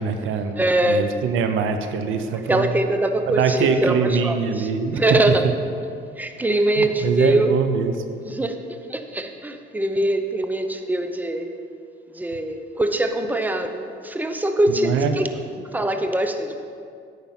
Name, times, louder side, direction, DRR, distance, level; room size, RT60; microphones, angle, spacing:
voice 1, 0.0-2.7 3.3-5.0 6.8-7.9 14.8-15.2, right 5 dB, 85° right, 7 dB, 0.8 m, -23 dB
voice 2, 0.6-1.1 2.5-5.5 6.2-7.5 8.2-11.5 12.1-15.3 15.6-16.5, right 1 dB, 10° right, 6 dB, 0.8 m, -23 dB
9.3 x 5.6 x 7.5 m, 2.3 s
cardioid pair, 90°, 20 cm